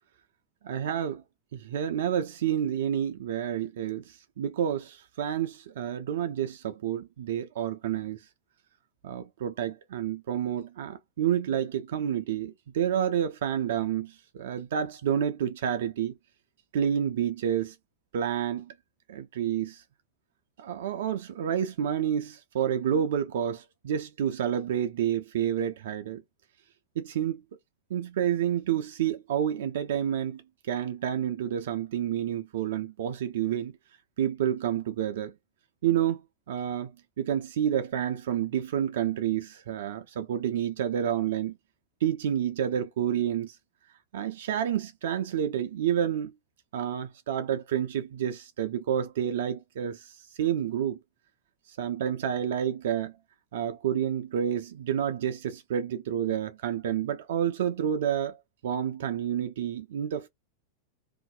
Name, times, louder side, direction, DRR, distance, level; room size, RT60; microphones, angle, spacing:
voice 1, 0.6-1.2 1.5-8.2 9.0-16.1 16.7-17.8 18.1-18.7 19.1-19.8 20.6-26.2 27.0-27.4 27.9-33.7 34.2-35.3 35.8-36.2 36.5-36.9 37.2-41.6 42.0-43.6 44.1-46.3 46.7-51.0 51.8-53.1 53.5-58.4 58.6-60.3, right 9 dB, 60° right, 0.3 m, -29 dB
2.5 x 2.0 x 2.4 m
figure-of-eight pair, 90°, 0 cm